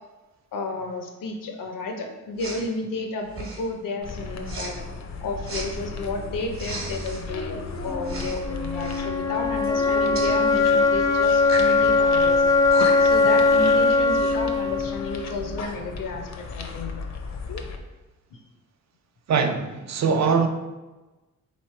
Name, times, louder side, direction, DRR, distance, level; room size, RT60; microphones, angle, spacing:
voice 1, 0.5-4.8 5.2-12.5 13.0-16.9 18.3-18.4, left 2 dB, 90° left, 3 dB, 0.8 m, -32 dB
Respiratory sounds, 2.4-2.6 3.3-3.7 4.4-4.7 5.4-5.7 6.5-7.2 8.0-8.4 8.7-9.0 10.1-10.3 11.4-11.7 12.4-12.5 12.7-13.2, right 2 dB, 45° right, 1.0 m, -35 dB
sound 1, 4.0-17.8, left 3 dB, 55° left, 0.6 m, -36 dB
sound 2, 7.8-15.8, left 3 dB, 10° left, 0.4 m, -21 dB
voice 2, 19.3-20.5, right 5 dB, 60° right, 6 dB, 0.5 m, -22 dB
3.9 x 3.2 x 4.2 m, 1.1 s
wide cardioid pair, 135°, 32 cm